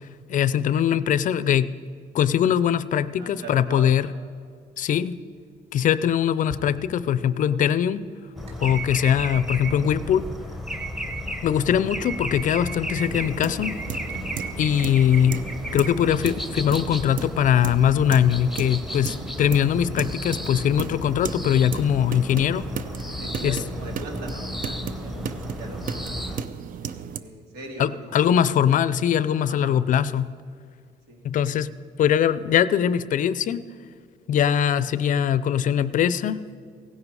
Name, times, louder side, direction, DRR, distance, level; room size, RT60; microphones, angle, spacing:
voice 1, 0.3-1.7 2.1-4.1 4.8-5.2 5.7-8.1 8.6-10.3 11.4-13.8 14.6-15.4 15.7-22.7 23.4-23.6 27.8-30.3 31.2-31.7 32.0-33.6 34.3-36.4, left 9 dB, 50° left, 16 dB, 0.5 m, -21 dB
voice 2, 3.2-4.1 23.2-25.2 25.5-26.4 26.8-26.9 27.1-28.3 29.5-29.8 31.1-31.3, right 2 dB, 85° right, 1 dB, 2.6 m, -40 dB
sound 1, 4.5-9.8, equal, 35° right, 2.2 m, -47 dB
sound 2, 8.4-26.4, equal, ahead, 0.9 m, -34 dB
sound 3, 13.0-27.2, right 7 dB, 55° right, 0.6 m, -36 dB
16.5 x 11.0 x 4.8 m, 2.1 s
cardioid pair, 110°, 17 cm